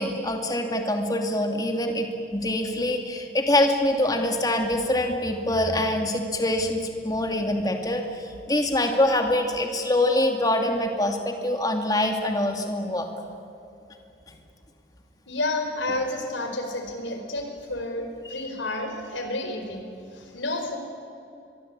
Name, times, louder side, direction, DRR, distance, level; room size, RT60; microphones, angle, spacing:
voice 1, 0.0-13.1 14.3-14.4 18.2-18.4, left 1 dB, 20° left, 4 dB, 2.5 m, -25 dB
voice 2, 15.3-19.8 20.1-20.8, left 2 dB, 90° left, 5 dB, 4.8 m, -30 dB
24.0 x 22.5 x 8.8 m, 2.7 s
head